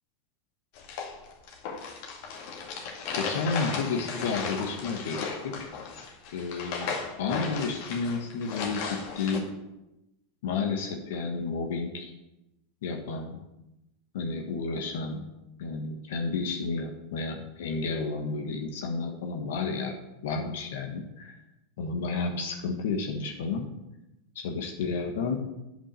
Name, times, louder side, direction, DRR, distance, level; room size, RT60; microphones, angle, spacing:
sound 1, 0.8-9.4, left 5 dB, 60° left, 2.2 m, -36 dB
voice 1, 3.1-5.7 6.3-9.5 10.4-12.1 12.8-13.4 14.1-15.2 15.6-20.0 20.2-21.4 21.8-23.7 24.3-25.4, left 4 dB, 75° left, 3 dB, 1.4 m, -31 dB
8.5 x 5.4 x 7.6 m, 0.93 s
hypercardioid pair, 110°, 0 cm